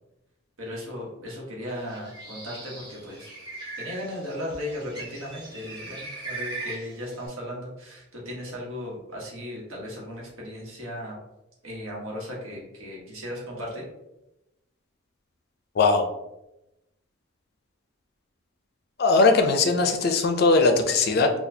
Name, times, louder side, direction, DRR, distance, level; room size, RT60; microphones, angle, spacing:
voice 1, 0.6-3.3 3.8-11.2 11.6-13.8, left 1 dB, 80° right, -3 dB, 1.1 m, -36 dB
Bird, 1.7-7.3, right 3 dB, 20° right, 1.2 m, -40 dB
voice 2, 15.8-16.1 19.0-21.3, left 3 dB, 50° left, 6 dB, 0.4 m, -20 dB
4.1 x 2.3 x 2.7 m, 0.92 s
head